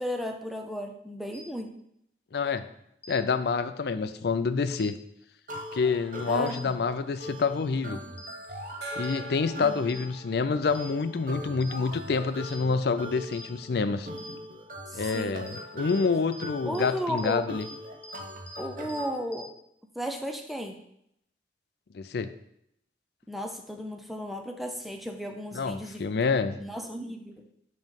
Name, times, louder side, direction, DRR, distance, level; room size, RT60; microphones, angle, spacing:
voice 1, 0.0-1.8 6.3-6.8 9.6-9.8 14.9-15.4 16.7-17.5 18.6-19.5 20.0-20.8 23.3-27.4, equal, ahead, 4 dB, 0.5 m, -35 dB
sound 1, 1.3-1.4 3.0-3.1 4.7-4.8 6.5-6.6 8.2-8.3 9.0-9.1 9.9-10.0 10.7-10.8 11.6-11.7 12.5-12.6 13.3-13.4 14.2-14.3 15.0-15.1 15.5-15.6 15.9-16.0 16.3-16.4 16.7-16.8 17.2-17.3 17.6-17.7 18.0-18.1 18.5-18.6 18.9-19.0 19.3-19.4, left 1 dB, 35° left, 0.9 m, -46 dB
voice 2, 2.3-2.7 3.1-5.0 5.7-8.0 9.0-14.1 14.9-17.6 21.9-22.3 25.5-26.6, left 4 dB, 60° left, 11 dB, 0.4 m, -27 dB
sound 2, 5.5-19.2, equal, 50° right, 0.7 m, -42 dB
Gong, 8.8-12.1, right 2 dB, 70° right, 1.1 m, -43 dB
7.6 x 3.1 x 5.2 m, 0.75 s
head